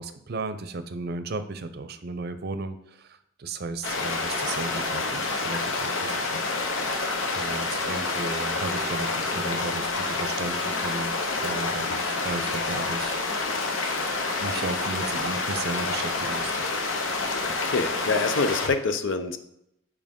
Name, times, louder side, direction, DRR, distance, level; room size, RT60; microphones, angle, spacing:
voice 1, 0.0-6.4 7.3-13.2 14.4-16.7, right 3 dB, 55° right, 11 dB, 0.5 m, -35 dB
sound 1, 3.8-18.7, left 3 dB, 85° left, 1.0 m, -28 dB
voice 2, 17.4-19.4, left 4 dB, 70° left, 9 dB, 0.6 m, -26 dB
7.3 x 4.9 x 3.6 m, 0.78 s
head